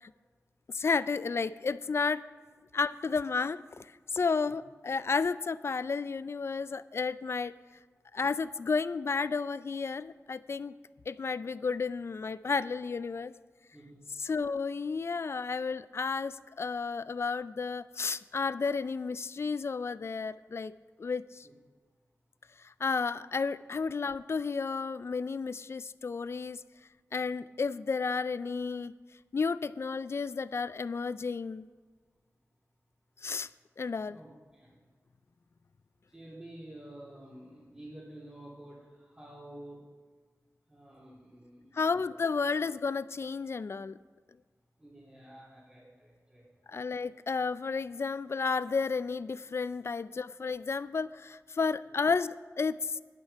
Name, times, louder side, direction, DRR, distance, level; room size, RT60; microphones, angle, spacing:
voice 1, 0.7-2.2 2.7-3.6 4.1-7.5 8.1-10.7 11.1-13.3 14.2-20.7 21.0-21.5 22.8-26.6 27.1-28.9 29.3-31.6 33.2-33.5 33.8-34.2 41.7-44.0 46.7-52.8, left 4 dB, 55° left, 16 dB, 0.3 m, -32 dB
voice 2, 13.7-14.0 21.4-21.5 34.1-34.8 36.1-39.8 40.7-41.8 44.8-46.4, right 1 dB, 25° right, -10 dB, 3.2 m, -50 dB
11.5 x 7.9 x 5.7 m, 1.4 s
wide cardioid pair, 75°, 5 cm